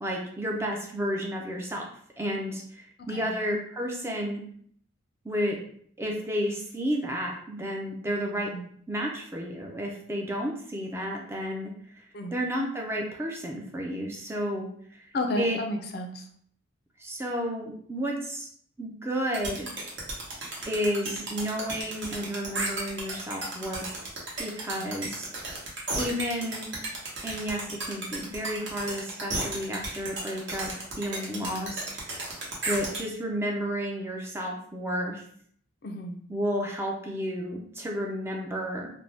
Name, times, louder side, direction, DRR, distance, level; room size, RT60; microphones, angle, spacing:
voice 1, 0.0-1.8 2.2-4.4 5.2-5.6 6.0-8.5 8.9-12.0 12.3-15.1 15.4-15.6 17.0-18.5 18.8-19.7 20.7-23.9 24.4-25.3 25.9-26.7 27.2-30.7 31.0-31.8 32.6-35.2 36.3-38.9, equal, 15° right, -1 dB, 0.4 m, -31 dB
voice 2, 15.1-16.3 24.8-24.9 31.3-31.7 35.8-36.2, left 1 dB, 50° left, 3 dB, 0.4 m, -32 dB
sound 1, 19.3-33.0, right 2 dB, 65° right, 0.9 m, -34 dB
2.6 x 2.2 x 3.3 m, 0.62 s
head